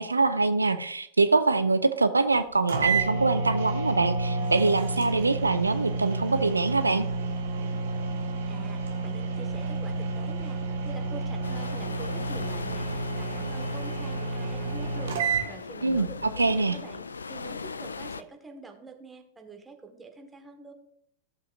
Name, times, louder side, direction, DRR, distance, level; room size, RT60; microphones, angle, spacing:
voice 1, 0.0-7.1 15.8-16.1 16.4-16.8, right 3 dB, 80° right, 11 dB, 0.4 m, -24 dB
sound 1, 2.3-2.4 2.7-15.5, right 3 dB, 60° right, 1.4 m, -30 dB
voice 2, 8.5-15.2 15.5-20.7, right 4 dB, 15° right, 4 dB, 1.4 m, -46 dB
sound 2, 11.4-18.2, left 4 dB, 75° left, 0.3 m, -39 dB
14.5 x 7.5 x 2.5 m, 0.69 s
figure-of-eight pair, 90°, 0 cm